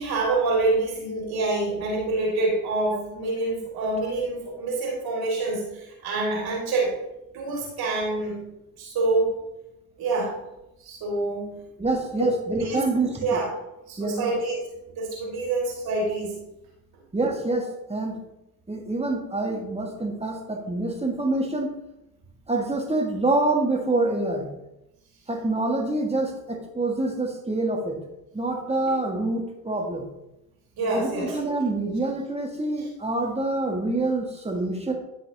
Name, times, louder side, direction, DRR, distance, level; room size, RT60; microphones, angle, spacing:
voice 1, 0.0-6.9 7.3-8.5 8.8-9.4 10.0-10.3 10.8-11.6 12.2-12.3 12.6-12.8 13.2-13.5 13.9-14.6 15.0-16.4 30.8-31.4 32.8-32.9, right 2 dB, 55° right, -2 dB, 2.7 m, -26 dB
voice 2, 11.8-13.4 14.0-14.3 17.1-18.2 18.7-21.7 22.5-24.5 25.3-28.0 28.3-30.1 30.9-34.9, right 2 dB, 15° right, 1 dB, 1.9 m, -26 dB
11.0 x 5.8 x 2.9 m, 0.91 s
figure-of-eight pair, 55°, 45 cm